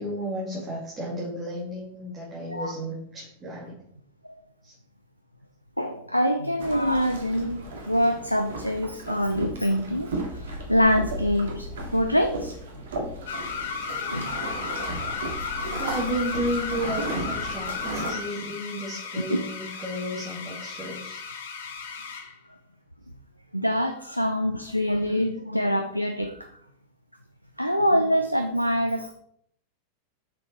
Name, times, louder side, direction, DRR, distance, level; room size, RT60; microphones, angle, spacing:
voice 1, 0.0-3.8 4.6-4.7 13.7-13.9 15.7-21.2, right 1 dB, 20° right, -6 dB, 2.7 m, -33 dB
voice 2, 5.8-12.8 14.1-14.4 15.4-15.8 19.3-19.4 23.5-26.5 27.6-29.1, equal, 90° left, 6 dB, 0.5 m, -25 dB
sound 1, 6.6-18.1, right 1 dB, 60° right, 2.0 m, -35 dB
sound 2, 13.3-22.3, left 5 dB, 60° left, 1.3 m, -34 dB
7.0 x 6.3 x 4.6 m, 0.68 s
figure-of-eight pair, 90°, 0 cm